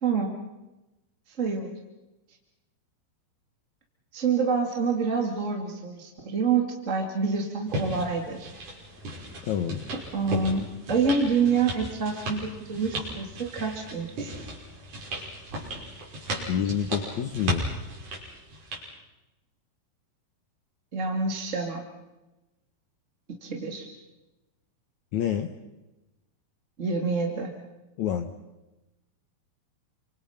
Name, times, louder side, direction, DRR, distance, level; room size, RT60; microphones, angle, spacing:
voice 1, 0.0-0.3 1.4-1.7 4.1-8.5 10.1-10.6 10.9-14.3 20.9-21.8 23.4-23.9 26.8-27.5, right 5 dB, 25° right, 2 dB, 1.8 m, -27 dB
sound 1, 7.7-18.8, right 1 dB, 45° right, 7.0 m, -36 dB
voice 2, 9.5-9.8 16.5-17.7 25.1-25.5 28.0-28.3, left 9 dB, 70° left, 7 dB, 1.8 m, -27 dB
29.0 x 25.5 x 5.8 m, 1.0 s
omnidirectional pair, 4.7 m